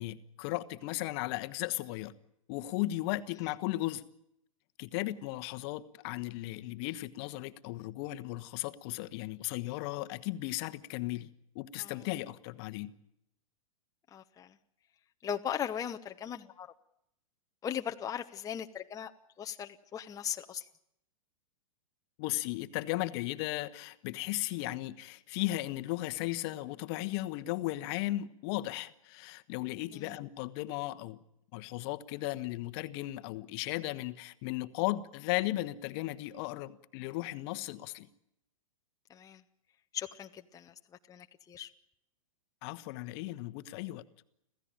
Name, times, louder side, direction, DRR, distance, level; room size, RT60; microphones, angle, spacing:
voice 1, 0.0-2.1 2.5-4.0 4.8-11.3 11.5-12.9 22.2-31.2 31.5-38.1 42.6-44.0, left 17 dB, 45° left, 1.2 m, -36 dB
voice 2, 14.1-14.6 15.2-16.7 17.6-19.1 19.4-20.7 29.9-30.1 39.1-39.4 39.9-40.7 41.1-41.7, left 9 dB, 20° left, 1.0 m, -38 dB
26.5 x 15.5 x 8.9 m
hypercardioid pair, 110°, 18 cm